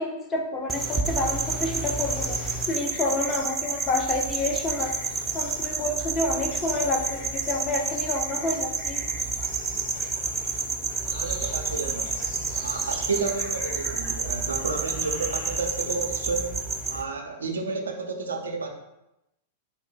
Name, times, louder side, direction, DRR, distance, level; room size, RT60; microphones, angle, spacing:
voice 1, 0.0-5.0 5.3-9.0, left 2 dB, 25° left, 1 dB, 0.6 m, -29 dB
sound 1, 0.7-17.0, right 4 dB, 15° right, 0.4 m, -30 dB
sound 2, 1.4-16.0, left 2 dB, 55° left, 1.4 m, -44 dB
voice 2, 11.1-12.2 12.5-16.6 16.9-18.7, right 4 dB, 80° right, 3 dB, 0.4 m, -31 dB
3.4 x 2.1 x 3.9 m, 0.90 s
figure-of-eight pair, 100°, 0 cm